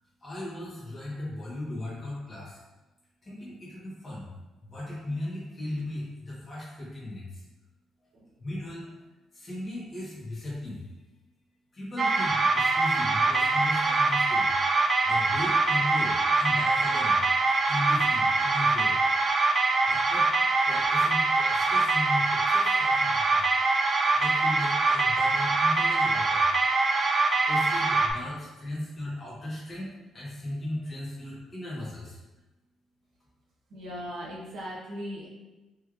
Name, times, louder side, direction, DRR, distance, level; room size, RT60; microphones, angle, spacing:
voice 1, 0.2-2.6 3.2-4.3 4.6-7.4 8.4-8.9 9.3-10.8 11.7-17.2 17.7-18.9 19.8-20.3 20.6-23.8 24.1-26.4 27.5-29.9 30.1-32.2, left 1 dB, 30° left, -8 dB, 1.1 m, -37 dB
sound 1, 12.0-28.1, right 3 dB, 40° right, 0.3 m, -24 dB
voice 2, 33.7-35.4, equal, 75° right, -4 dB, 0.9 m, -38 dB
3.1 x 3.1 x 2.4 m, 1.1 s
cardioid pair, 90°, 0 cm